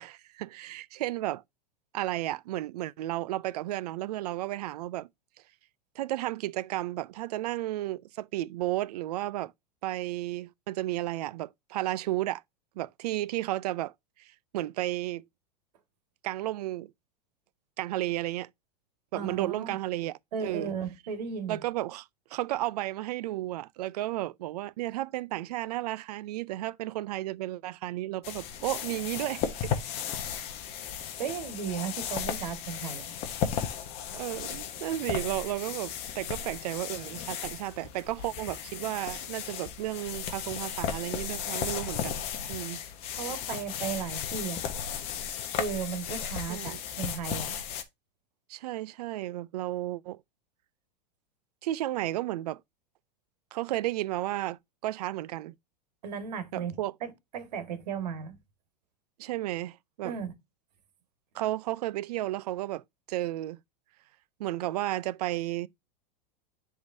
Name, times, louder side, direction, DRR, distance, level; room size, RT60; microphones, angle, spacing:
voice 1, 0.0-1.4 1.9-5.1 6.0-9.5 9.8-12.4 12.8-13.9 14.2-15.2 16.2-16.9 17.8-18.5 19.1-20.7 21.5-30.1 34.1-42.2 42.5-42.8 46.5-46.8 48.5-50.2 51.6-52.6 53.5-55.5 56.5-56.9 59.2-60.2 61.3-62.8 63.1-63.6 64.4-65.7, right 15 dB, 75° right, 0.4 m, -33 dB
voice 2, 19.1-19.8 20.3-21.6 31.2-33.1 43.2-44.6 45.6-47.6 56.0-56.7 57.0-58.4 60.0-60.3, right 7 dB, 90° right, 1.7 m, -35 dB
sound 1, 28.2-47.8, left 8 dB, 30° left, 0.9 m, -35 dB
10.5 x 3.6 x 2.6 m
supercardioid pair, 170°, 21 cm